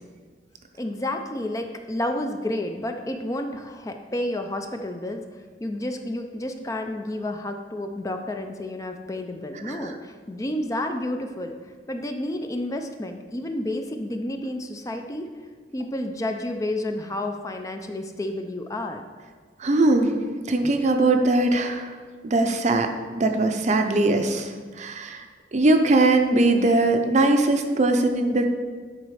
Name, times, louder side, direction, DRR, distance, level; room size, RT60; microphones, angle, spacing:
voice 1, 0.8-5.2 5.6-11.5 11.9-15.3 15.7-19.0, left 1 dB, 20° left, 5 dB, 0.4 m, -30 dB
voice 2, 19.6-20.2 20.5-21.9 22.2-22.9 23.2-24.5 24.8-25.2 25.5-28.4, right 2 dB, 40° right, 5 dB, 0.6 m, -20 dB
9.9 x 4.1 x 4.8 m, 1.5 s
head